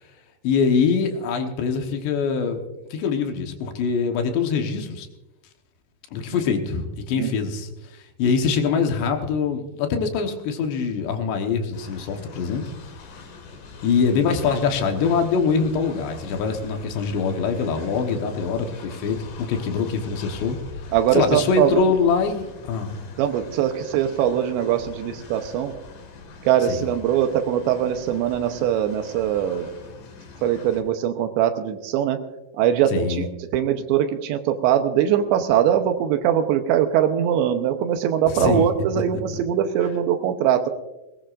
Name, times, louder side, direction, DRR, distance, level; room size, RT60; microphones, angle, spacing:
voice 1, 0.4-2.6 2.9-5.1 6.1-7.7 8.2-12.6 13.8-20.6 21.1-22.9 26.7-26.8 32.9-33.3 38.3-38.7, left 5 dB, 75° left, 4 dB, 3.3 m, -23 dB
Train, 11.7-30.8, left 4 dB, 55° left, 3.0 m, -42 dB
voice 2, 20.9-21.9 23.2-25.7 26.5-29.7 30.4-32.2 32.6-40.7, right 10 dB, 80° right, 7 dB, 3.0 m, -22 dB
20.0 x 20.0 x 2.5 m, 0.99 s
omnidirectional pair, 5.3 m